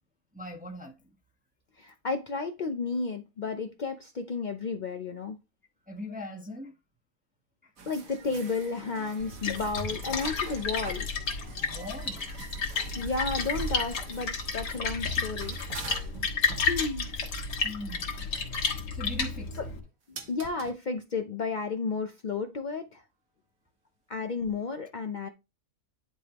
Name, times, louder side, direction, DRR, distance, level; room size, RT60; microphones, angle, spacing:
voice 1, 0.3-0.9 5.9-6.7 7.6-7.7 11.5-12.6 17.6-18.1 18.5-18.6 18.9-19.7 20.1-20.3, left 1 dB, 5° right, 1.0 m, -41 dB
voice 2, 1.8-5.4 7.9-11.1 12.9-15.6 16.7-17.1 19.6-19.7 20.1-23.0 24.1-25.3, left 4 dB, 60° left, 0.4 m, -32 dB
sound 1, 7.8-19.4 20.2-20.7 24.7-24.8, right 4 dB, 55° right, 1.7 m, -44 dB
Splash splatter, 9.2-19.8, left 4 dB, 80° left, 2.2 m, -32 dB
10.5 x 5.1 x 3.0 m
omnidirectional pair, 1.8 m